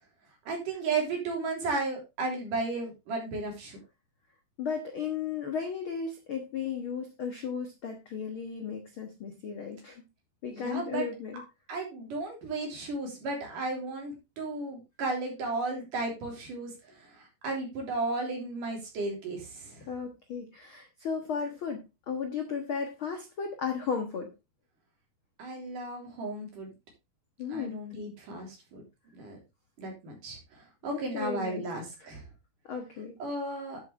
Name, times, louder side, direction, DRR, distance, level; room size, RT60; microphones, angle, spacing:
voice 1, 0.5-3.8 10.5-11.1 11.7-16.7 17.0-19.9 25.4-26.7 27.5-28.8 29.1-29.4 29.8-32.2 33.2-33.8, right 3 dB, 55° right, 1 dB, 4.8 m, -34 dB
voice 2, 4.6-10.0 10.4-11.4 19.9-24.3 27.4-27.8 30.9-31.7 32.7-33.2, left 6 dB, 60° left, 4 dB, 1.3 m, -35 dB
10.5 x 7.9 x 3.3 m, 0.24 s
omnidirectional pair, 4.5 m